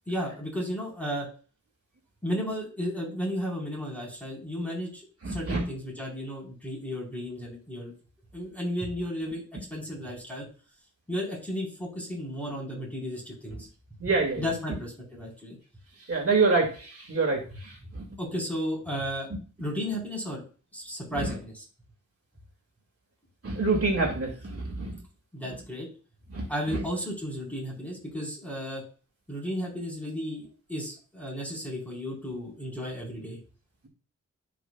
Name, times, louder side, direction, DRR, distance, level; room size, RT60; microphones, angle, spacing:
voice 1, 0.1-1.3 2.2-7.9 8.3-9.4 9.7-10.5 11.1-13.7 14.4-15.6 18.2-19.3 19.6-20.4 20.7-21.6 25.3-25.9 26.5-28.8 29.3-33.4, equal, 5° left, -3 dB, 4.1 m, -34 dB
voice 2, 5.2-5.6 14.0-14.4 16.1-18.0 21.2-21.3 23.4-24.9 26.3-26.4, right 3 dB, 50° right, 0 dB, 2.2 m, -26 dB
14.5 x 5.2 x 2.3 m, 0.38 s
wide cardioid pair, 140°, 30 cm